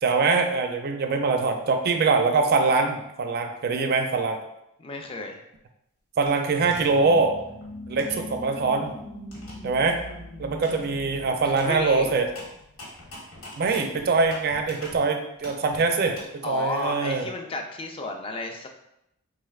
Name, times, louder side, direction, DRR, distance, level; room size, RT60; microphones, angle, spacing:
voice 1, 0.0-4.4 6.2-7.3 7.9-9.0 9.6-10.0 10.4-12.3 13.6-17.3, right 4 dB, 45° right, 5 dB, 0.4 m, -23 dB
voice 2, 4.8-5.4 11.5-12.1 16.4-18.7, left 2 dB, 25° left, 3 dB, 0.3 m, -32 dB
sound 1, 6.2-6.8 7.3-8.9 9.3-9.5 9.9-10.1 10.6-10.8 11.1-15.0 15.4-16.2, left 1 dB, 90° left, 1.3 m, -43 dB
sound 2, 6.6-13.0, left 1 dB, 60° left, 0.9 m, -41 dB
3.9 x 3.2 x 2.3 m, 0.83 s
head